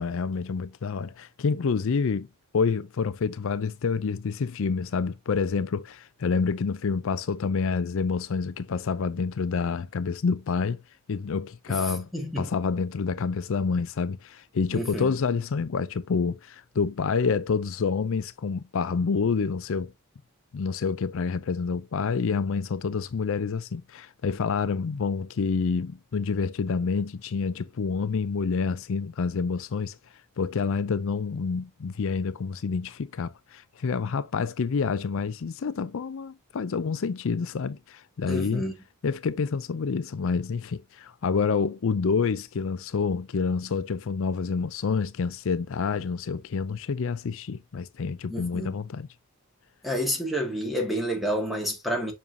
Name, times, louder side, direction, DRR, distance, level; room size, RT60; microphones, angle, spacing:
voice 1, 0.0-2.3 2.5-10.8 11.1-12.1 12.4-19.9 20.5-30.0 30.4-38.6 39.0-49.1, left 5 dB, 65° left, 0.4 m, -28 dB
voice 2, 11.7-12.5 14.7-15.2 38.3-38.7 48.3-48.7 49.8-52.1, equal, ahead, 2.1 m, -29 dB
7.1 x 5.5 x 2.7 m
head